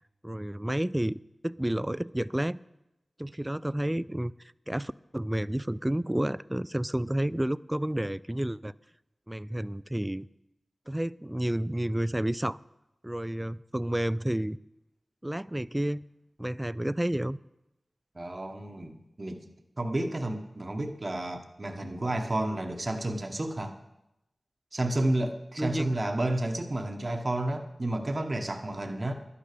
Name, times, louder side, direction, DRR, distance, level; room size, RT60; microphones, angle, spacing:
voice 1, 0.2-2.6 3.2-4.3 4.7-8.7 9.3-10.3 10.9-12.6 13.0-14.6 15.2-16.0 16.4-17.4 25.6-26.0, right 1 dB, 15° right, 19 dB, 0.3 m, -30 dB
voice 2, 18.1-19.5 19.8-23.8 24.7-29.1, right 1 dB, 40° right, 5 dB, 1.2 m, -31 dB
11.0 x 10.0 x 6.8 m, 0.91 s
cardioid pair, 50°, 0 cm